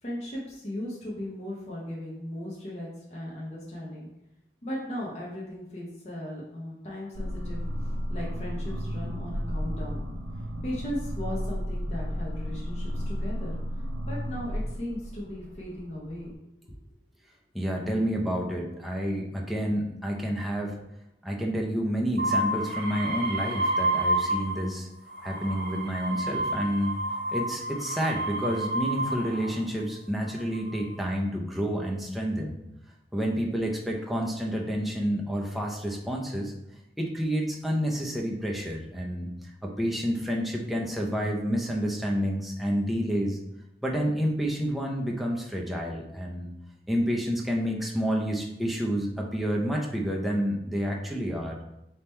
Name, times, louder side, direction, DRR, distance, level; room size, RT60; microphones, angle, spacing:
voice 1, 0.0-4.1 4.6-7.6 8.1-10.0 10.6-13.6 14.0-16.3, left 1 dB, 35° left, -5 dB, 0.8 m, -37 dB
sound 1, 7.1-16.3, equal, 85° right, 0.6 m, -33 dB
voice 2, 17.5-20.8 21.2-24.9 25.2-26.9 27.3-32.6 33.1-36.5 37.0-39.3 39.6-43.4 43.8-46.5 46.9-51.6, equal, ahead, -2 dB, 0.5 m, -29 dB
sound 2, 22.2-24.7 25.1-29.6 30.4-30.9, right 1 dB, 65° right, 1.1 m, -30 dB
3.5 x 2.9 x 4.3 m, 0.86 s
head